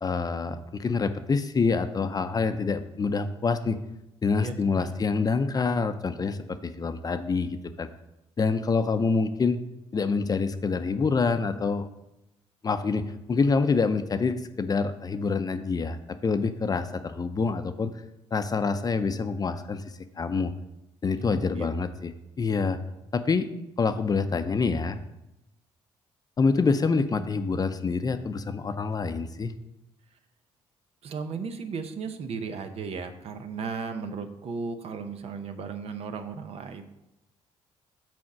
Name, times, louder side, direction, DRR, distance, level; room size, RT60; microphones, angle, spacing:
voice 1, 0.0-3.8 4.2-7.9 8.4-9.6 9.9-11.9 12.6-17.9 18.3-19.8 20.2-20.5 21.0-22.1 22.4-22.8 23.1-23.5 23.8-25.0 26.4-29.5, left 4 dB, 35° left, 9 dB, 0.6 m, -26 dB
voice 2, 4.4-4.9 21.2-21.7 31.0-36.8, right 5 dB, 65° right, 8 dB, 0.7 m, -35 dB
6.2 x 4.2 x 6.0 m, 0.91 s
cardioid pair, 75°, 11 cm